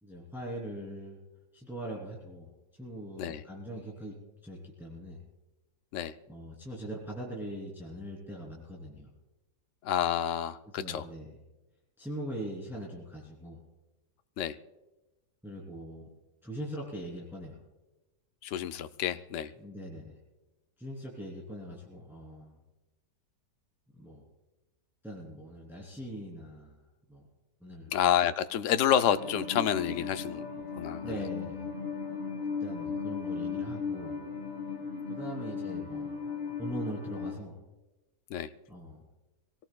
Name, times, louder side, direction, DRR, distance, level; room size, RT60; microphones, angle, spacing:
voice 1, 0.0-1.2 1.5-2.5 2.8-4.1 4.4-5.2 6.3-9.1 10.6-11.4 12.0-13.6 15.4-16.1 16.4-17.6 19.6-20.2 20.8-22.6 23.9-24.2 25.0-26.8 27.1-27.2 27.6-27.9 31.0-31.7 32.6-34.2 35.1-36.1 36.6-37.6 38.7-39.0, equal, ahead, -4 dB, 3.0 m, -41 dB
voice 2, 9.8-11.0 14.4-14.6 18.4-19.5 27.9-30.5 30.8-31.1 38.3-38.5, left 9 dB, 75° left, 11 dB, 0.7 m, -29 dB
sound 1, 29.1-37.3, left 5 dB, 30° left, 1.5 m, -36 dB
24.0 x 18.0 x 2.3 m, 1.1 s
omnidirectional pair, 1.9 m